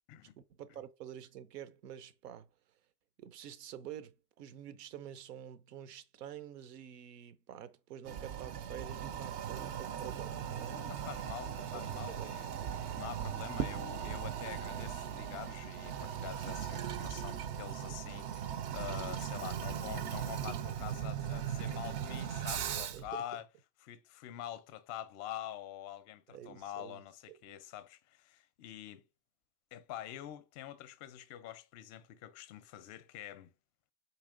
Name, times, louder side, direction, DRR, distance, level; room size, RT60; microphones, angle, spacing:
voice 1, 0.5-2.5 3.2-10.9 11.6-12.3 22.9-23.2 26.3-27.0 27.3-27.4, right 10 dB, 80° right, 0.6 m, -48 dB
Toilet flush, 8.0-23.1, right 9 dB, 40° right, 0.4 m, -39 dB
voice 2, 10.7-12.5 13.0-23.4 23.8-29.0 29.7-33.5, left 12 dB, 35° left, 0.5 m, -46 dB
4.0 x 2.9 x 2.5 m
hypercardioid pair, 100°, 47 cm